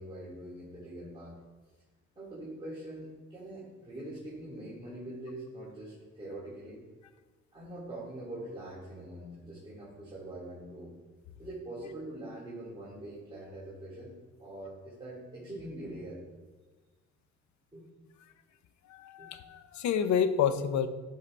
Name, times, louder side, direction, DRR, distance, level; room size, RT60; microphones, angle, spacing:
voice 1, 0.0-1.4 2.2-6.8 7.5-10.9 11.4-14.1 14.4-16.2 17.7-17.8 19.2-19.3, right 1 dB, 15° right, -8 dB, 2.6 m, -43 dB
voice 2, 18.9-20.9, left 8 dB, 70° left, 12 dB, 0.7 m, -29 dB
11.0 x 5.6 x 3.3 m, 1.2 s
cardioid pair, 90°, 30 cm